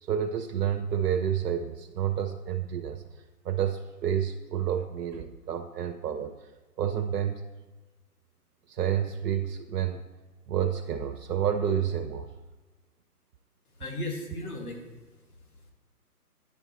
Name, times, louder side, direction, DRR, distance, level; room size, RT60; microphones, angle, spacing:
voice 1, 0.0-6.5 6.8-7.4 8.7-10.0 10.5-12.3, right 9 dB, 85° right, 6 dB, 0.6 m, -29 dB
voice 2, 13.7-15.7, left 1 dB, 65° left, 1 dB, 1.7 m, -38 dB
9.5 x 3.4 x 4.0 m, 1.2 s
hypercardioid pair, 145°, 47 cm